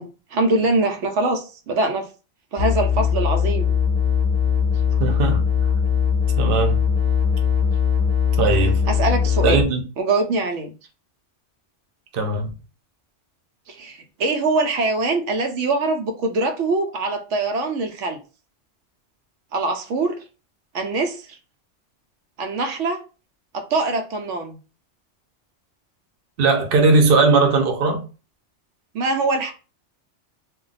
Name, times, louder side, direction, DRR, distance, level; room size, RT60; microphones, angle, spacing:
voice 1, 0.0-2.1 2.5-3.7 8.9-9.6 10.0-10.7 13.7-18.2 19.5-20.2 20.7-21.2 22.4-23.0 23.5-24.6 28.9-29.5, right 2 dB, 85° right, 0.9 m, -23 dB
sound 1, 2.6-9.6, left 7 dB, 10° left, 1.1 m, -20 dB
voice 2, 5.0-5.4 6.4-6.8 8.4-8.8 9.4-9.8 12.1-12.5 26.4-28.0, right 3 dB, 55° right, 0.8 m, -18 dB
2.4 x 2.1 x 3.8 m
omnidirectional pair, 1.2 m